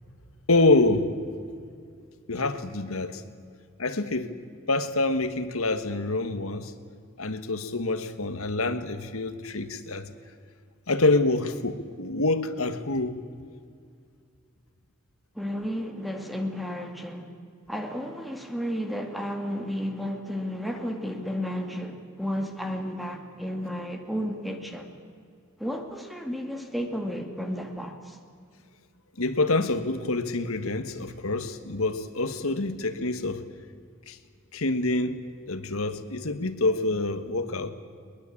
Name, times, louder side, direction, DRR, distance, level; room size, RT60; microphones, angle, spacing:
voice 1, 0.5-1.1 2.3-3.2 3.8-4.3 4.7-6.7 7.2-10.1 10.9-13.2 29.2-33.4 34.1-34.2 34.5-35.2 35.5-37.7, left 2 dB, 75° left, 1.6 m, -26 dB
voice 2, 15.4-17.3 17.7-25.0 25.6-28.2, equal, ahead, 2.1 m, -32 dB
22.0 x 21.0 x 8.6 m
head